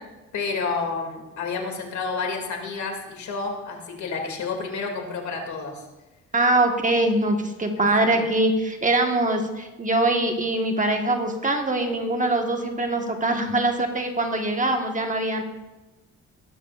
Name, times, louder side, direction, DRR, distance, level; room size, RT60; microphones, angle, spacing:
voice 1, 0.3-5.8 8.2-8.3, left 4 dB, 70° left, 2 dB, 2.5 m, -30 dB
voice 2, 6.3-15.4, right 2 dB, 25° right, 3 dB, 1.4 m, -23 dB
17.5 x 12.5 x 2.5 m, 1.1 s
cardioid pair, 90°, 30 cm